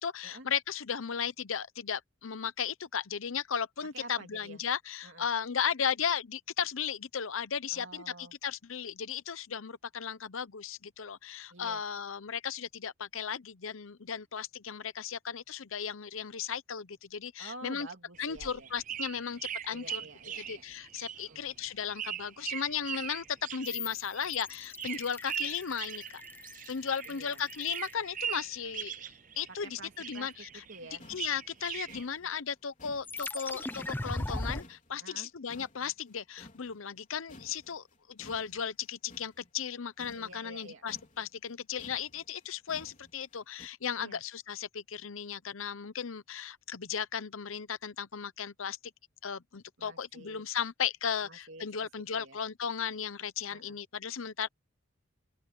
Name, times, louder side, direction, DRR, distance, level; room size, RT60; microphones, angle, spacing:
voice 1, 0.0-17.9 18.2-20.0 20.4-26.2 26.7-30.6 31.1-48.8 49.2-54.5, left 7 dB, 80° left, 0.8 m, -36 dB
voice 2, 3.9-4.6 5.0-5.3 7.7-8.3 11.5-11.8 17.4-18.7 19.7-20.6 21.2-21.5 27.0-27.4 29.6-30.3 30.7-31.0 35.0-35.3 40.1-40.8 44.0-44.2 49.8-50.4 51.2-51.7 52.1-52.4 53.5-53.8, right 2 dB, 65° right, 2.7 m, -49 dB
sound 1, 18.1-27.2 27.5-29.7 30.0-32.0, right 9 dB, 40° right, 0.5 m, -40 dB
sound 2, 23.6-28.7 33.0-34.6, left 2 dB, 10° left, 0.6 m, -40 dB
sound 3, 30.7-30.8 31.0-35.2 35.5-37.0 37.3-43.7, left 1 dB, 35° left, 4.1 m, -55 dB
open air
head